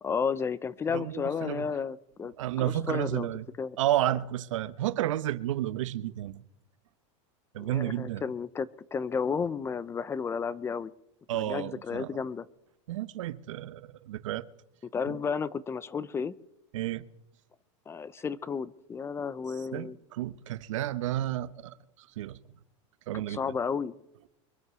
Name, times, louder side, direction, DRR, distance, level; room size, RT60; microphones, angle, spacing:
voice 1, 0.0-3.3 3.6-3.8 7.6-10.9 11.3-12.5 14.8-16.3 17.9-20.0 23.3-23.9, left 6 dB, 15° left, 0.5 m, -32 dB
voice 2, 0.9-1.7 2.4-3.5 3.8-6.4 7.5-8.2 11.3-12.1 12.9-14.5 15.1-15.2 16.7-17.1 19.7-21.7 22.2-22.4 23.1-23.4, right 13 dB, 85° right, 1.0 m, -31 dB
23.5 x 8.0 x 6.9 m
supercardioid pair, 140°, 16 cm